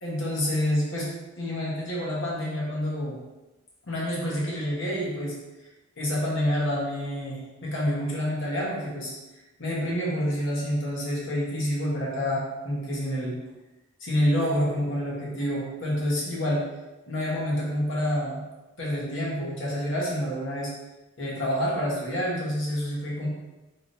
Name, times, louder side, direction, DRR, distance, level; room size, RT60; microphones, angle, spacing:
voice 1, 0.0-3.2 3.9-5.4 6.0-9.1 9.6-13.4 14.0-16.7 17.1-18.4 18.8-20.7 21.2-23.3, equal, 65° left, -5 dB, 1.2 m, -28 dB
3.6 x 3.3 x 2.6 m, 1.1 s
head